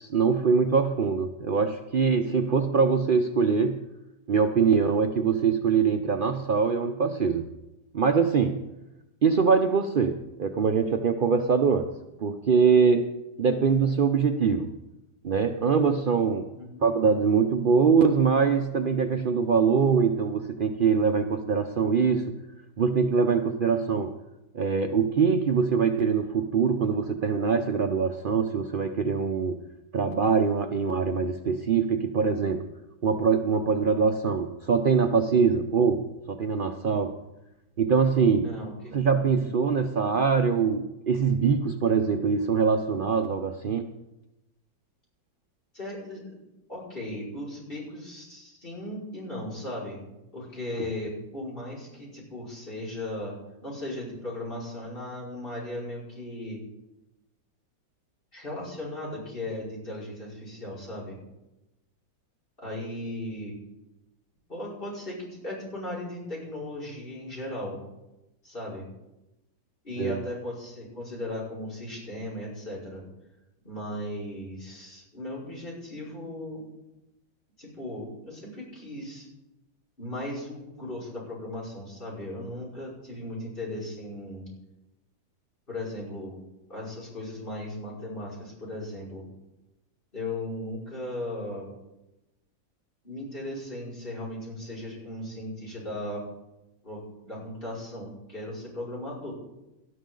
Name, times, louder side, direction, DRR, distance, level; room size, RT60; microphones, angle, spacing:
voice 1, 0.0-3.8 4.3-7.5 7.9-8.6 9.2-11.9 12.2-13.1 13.4-14.7 15.2-16.5 16.8-22.3 22.8-24.1 24.5-29.6 29.9-32.6 33.0-37.1 37.8-38.5 38.9-43.9 70.0-70.2, right 5 dB, 70° right, 5 dB, 0.5 m, -23 dB
voice 2, 38.4-39.0 39.4-39.5 45.7-46.3 46.7-50.0 50.3-53.3 53.6-56.6 58.3-61.2 62.6-63.6 64.5-67.8 68.4-68.9 69.8-73.0 73.6-76.6 77.6-79.3 80.0-84.5 85.7-86.4 86.7-89.3 90.1-91.7 93.0-96.2 96.8-99.3, left 1 dB, 30° left, -4 dB, 5.6 m, -37 dB
19.0 x 12.5 x 3.9 m, 0.93 s
omnidirectional pair, 1.9 m